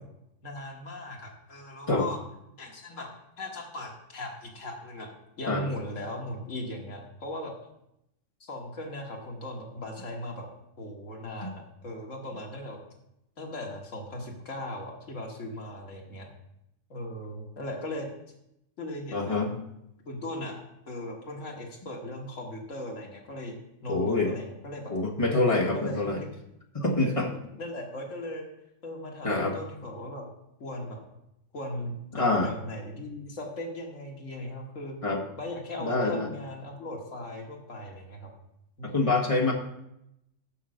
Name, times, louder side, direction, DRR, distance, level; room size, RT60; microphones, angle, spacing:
voice 1, 0.4-2.2 2.6-3.1 3.4-7.5 8.4-10.5 10.8-12.8 13.4-16.3 16.9-18.1 18.8-19.4 20.1-23.6 23.8-24.9 25.7-26.3 27.0-28.5 28.8-30.3 30.6-31.0 31.5-35.0 35.4-38.3 38.8-38.9, left 1 dB, 75° left, 0 dB, 1.9 m, -38 dB
voice 2, 19.1-19.5 23.9-24.3 24.9-26.2 26.7-27.3 29.2-29.6 32.1-32.5 35.0-35.2 35.8-36.3 38.8-39.5, left 2 dB, 25° left, -1 dB, 1.4 m, -26 dB
7.1 x 5.7 x 6.3 m, 0.83 s
omnidirectional pair, 1.3 m